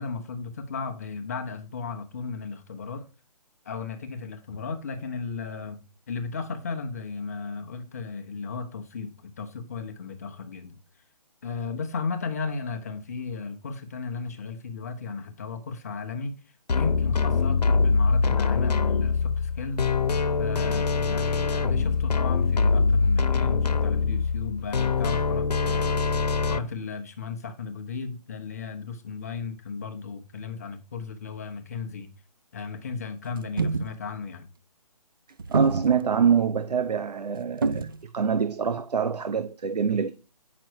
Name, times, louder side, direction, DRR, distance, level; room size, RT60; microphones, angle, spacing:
voice 1, 0.0-3.1 3.6-10.8 11.4-16.3 16.7-19.9 20.4-26.0 26.5-32.1 32.5-34.5, left 4 dB, 25° left, 0.8 m, -35 dB
sound 1, 16.7-26.6, left 4 dB, 90° left, 0.9 m, -23 dB
sound 2, 33.4-33.9 35.4-36.0 37.6-38.0, right 4 dB, 35° right, 0.5 m, -26 dB
voice 2, 35.5-40.1, right 7 dB, 80° right, 0.8 m, -25 dB
9.0 x 6.0 x 4.6 m
hypercardioid pair, 170°, 20 cm